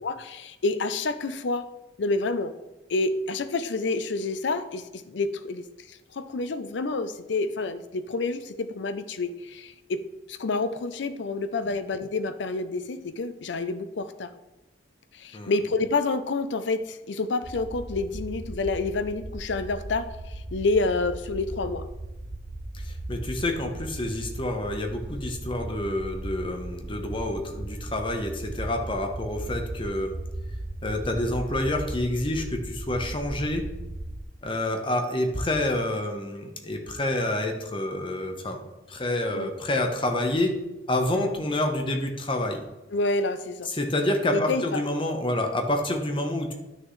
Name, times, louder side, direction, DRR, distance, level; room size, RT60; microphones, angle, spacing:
voice 1, 0.0-1.7 2.0-2.5 2.9-10.0 10.3-14.3 15.1-20.1 20.5-21.8 39.3-39.5 41.1-41.3 42.9-43.7 44.3-44.8, left 3 dB, 75° left, 12 dB, 0.6 m, -28 dB
sound 1, 17.4-34.2, right 1 dB, 25° right, 0.4 m, -37 dB
voice 2, 22.7-30.2 30.8-33.7 34.4-38.6 38.9-40.5 40.9-42.6 43.6-46.5, left 1 dB, 30° left, 4 dB, 0.9 m, -28 dB
10.5 x 6.4 x 3.2 m, 1.0 s
head